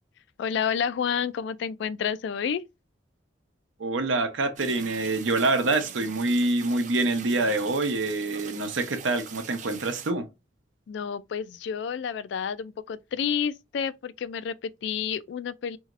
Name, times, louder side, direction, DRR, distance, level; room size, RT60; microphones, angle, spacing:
voice 1, 0.4-2.6 10.9-15.8, left 7 dB, 65° left, 0.3 m, -30 dB
voice 2, 3.8-10.3, right 2 dB, 85° right, 0.7 m, -26 dB
sound 1, 4.6-10.1, right 7 dB, 40° right, 0.4 m, -43 dB
2.9 x 2.7 x 2.4 m
head